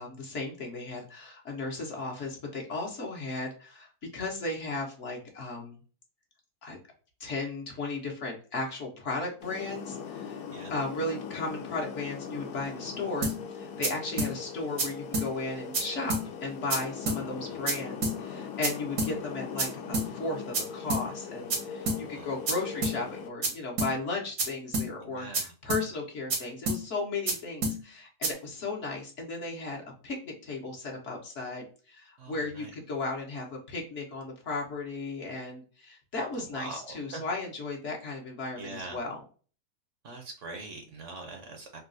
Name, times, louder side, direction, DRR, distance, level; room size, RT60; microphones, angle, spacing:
voice 1, 0.0-5.8 6.6-6.8 7.2-10.4 10.7-16.1 16.4-39.2, left 3 dB, 55° left, -1 dB, 1.1 m, -35 dB
sound 1, 9.4-23.3, left 6 dB, 80° left, 1.2 m, -40 dB
sound 2, 13.2-13.4 13.8-13.9 14.2-14.3 14.8-14.9 15.1-15.3 15.7-15.8 16.1-16.2 16.7-16.8 17.1-17.2 17.7-17.8 18.0-18.2 18.6-18.7 19.0-19.1 19.6-19.7 19.9-20.1 20.5-20.6 20.9-21.0 21.5-21.6 21.9-22.0 22.5-22.6 22.8-23.0 23.4-23.5 23.8-23.9 24.4-24.5 24.7-24.9 25.3-25.4 25.7-25.8 26.3-26.4 26.7-26.8 27.3-27.4 27.6-27.8 28.2-28.3, right 2 dB, 85° right, 1.6 m, -28 dB
voice 2, 21.8-22.3 25.0-25.5 32.2-32.7 36.3-37.2 38.6-39.0 40.0-41.8, right 3 dB, 60° right, 3 dB, 0.9 m, -43 dB
3.8 x 2.3 x 2.5 m, 0.39 s
omnidirectional pair, 1.7 m